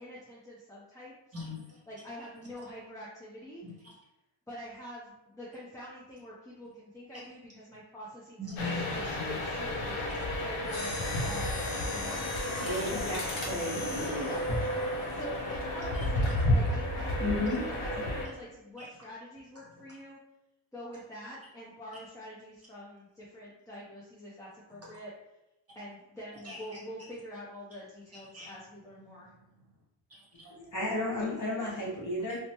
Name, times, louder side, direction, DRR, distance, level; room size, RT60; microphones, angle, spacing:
voice 1, 0.0-1.1 1.9-3.7 4.5-10.0 10.4-12.3 12.9-13.2 14.2-14.5 15.1-17.3 17.7-20.2 20.7-25.1 25.7-29.3, equal, 5° left, -8 dB, 0.4 m, -45 dB
voice 2, 1.3-1.8 3.6-3.9 8.4-9.4 10.1-10.3 12.6-12.9 13.3-14.2 15.9-16.4 18.8-18.9 19.7-19.8 24.7-25.0 26.4-26.8 28.1-28.5 29.0-29.8 30.1-30.5, left 3 dB, 30° right, -4 dB, 0.9 m, -44 dB
sound 1, 8.6-18.3, left 1 dB, 80° left, 0.6 m, -32 dB
Mechanisms, 10.6-15.6 16.2-16.4 17.1-17.4 17.7-17.8, left 2 dB, 65° left, 1.1 m, -40 dB
voice 3, 12.6-13.2 13.4-14.3 17.2-17.7 30.6-32.4, left 1 dB, 40° left, -5 dB, 0.9 m, -33 dB
3.0 x 2.1 x 2.8 m, 0.94 s
wide cardioid pair, 130°, 49 cm